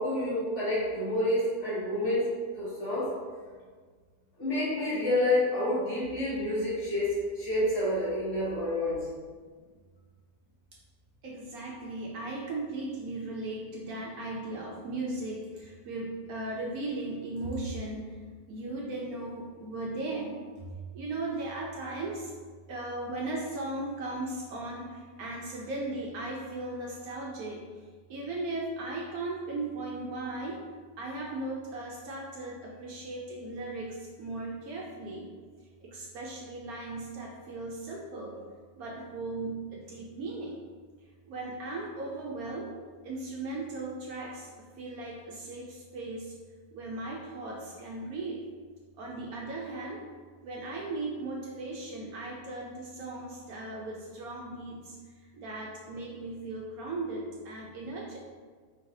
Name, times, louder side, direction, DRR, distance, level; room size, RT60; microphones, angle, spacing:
voice 1, 0.0-2.3 2.5-3.1 4.4-9.0, left 1 dB, 45° left, -10 dB, 1.8 m, -28 dB
voice 2, 11.2-18.2 18.5-22.3 22.7-27.6 28.1-30.6 31.0-35.3 35.8-38.4 38.8-40.7 41.3-42.7 43.0-46.3 46.7-48.4 49.0-50.0 50.4-58.4, right 2 dB, 70° right, -2 dB, 1.0 m, -37 dB
4.6 x 3.3 x 2.6 m, 1.5 s
omnidirectional pair, 1.8 m